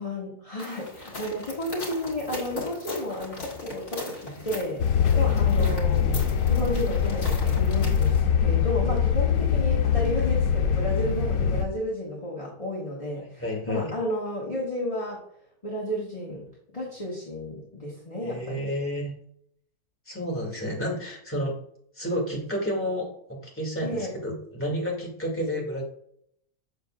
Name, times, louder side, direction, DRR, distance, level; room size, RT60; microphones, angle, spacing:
voice 1, 0.0-6.2 6.5-15.2 15.6-16.5 16.7-18.7 23.8-24.1, left 1 dB, 25° left, -5 dB, 1.6 m, -32 dB
sound 1, 0.6-8.2, left 2 dB, 55° left, 2.4 m, -39 dB
sound 2, 4.8-11.7, left 7 dB, 90° left, 1.2 m, -23 dB
voice 2, 13.2-13.9 18.2-19.1 20.1-21.6 21.9-25.8, equal, 10° left, -3 dB, 2.1 m, -31 dB
7.5 x 6.5 x 2.4 m, 0.68 s
omnidirectional pair, 1.6 m